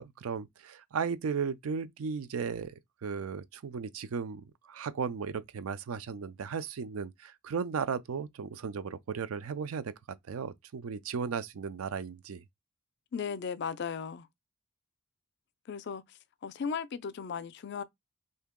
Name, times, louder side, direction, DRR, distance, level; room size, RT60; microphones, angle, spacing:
voice 1, 0.0-2.7 3.0-9.9 10.3-12.4, right 6 dB, 75° right, 0.4 m, -35 dB
voice 2, 13.1-14.3 15.7-16.0 16.4-17.8, left 6 dB, 55° left, 0.4 m, -36 dB
2.8 x 2.7 x 3.6 m
head